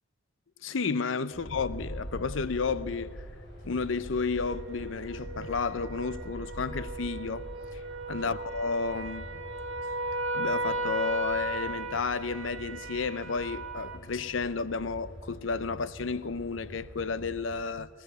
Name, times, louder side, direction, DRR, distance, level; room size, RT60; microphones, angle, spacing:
voice 1, 0.6-3.2 3.6-7.8 8.1-9.3 10.3-17.9, left 4 dB, 80° left, 0.7 m, -32 dB
sound 1, 1.3-17.6, equal, 65° left, 7.1 m, -44 dB
sound 2, 4.5-14.0, right 2 dB, 70° right, 2.7 m, -36 dB
25.5 x 17.0 x 6.9 m
head